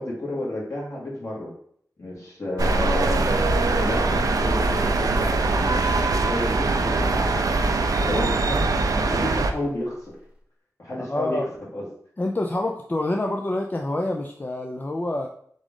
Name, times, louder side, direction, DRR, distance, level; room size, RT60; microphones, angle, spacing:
voice 1, 0.0-1.5 2.0-3.3 3.6-7.4 8.0-8.7 8.9-10.0 10.8-11.5 11.7-11.9, left 1 dB, 55° left, -5 dB, 2.0 m, -31 dB
sound 1, 2.6-10.1, left 1 dB, 20° right, 0.8 m, -33 dB
sound 2, 2.6-9.5, right 3 dB, 75° right, 0.4 m, -22 dB
voice 2, 11.0-11.5 12.2-15.3, left 1 dB, 30° left, 1 dB, 0.4 m, -27 dB
3.7 x 3.7 x 3.6 m, 0.63 s
wide cardioid pair, 95°, 6 cm